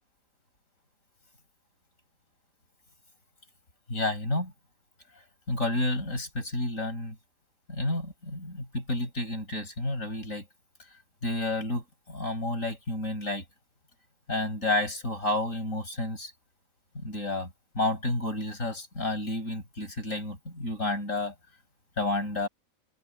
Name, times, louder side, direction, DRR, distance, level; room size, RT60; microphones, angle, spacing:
voice 1, 3.9-4.5 5.5-7.2 7.7-10.4 11.2-13.4 14.3-16.3 16.9-21.3 22.0-22.5, left 2 dB, 70° left, 6.4 m, -30 dB
open air
omnidirectional pair, 1.4 m